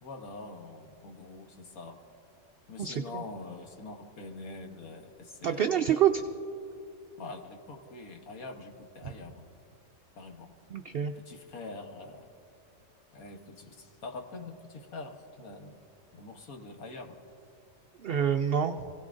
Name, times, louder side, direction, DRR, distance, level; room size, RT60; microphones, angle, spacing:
voice 1, 0.0-2.0 2.7-5.8 7.2-9.5 10.2-10.5 11.2-12.3 13.1-15.8 16.1-17.2, left 3 dB, 70° left, 3 dB, 1.6 m, -44 dB
voice 2, 2.8-3.2 5.4-6.2 10.7-11.1 18.0-18.9, right 9 dB, 70° right, 6 dB, 0.5 m, -27 dB
27.5 x 17.0 x 2.6 m, 2.7 s
omnidirectional pair, 1.6 m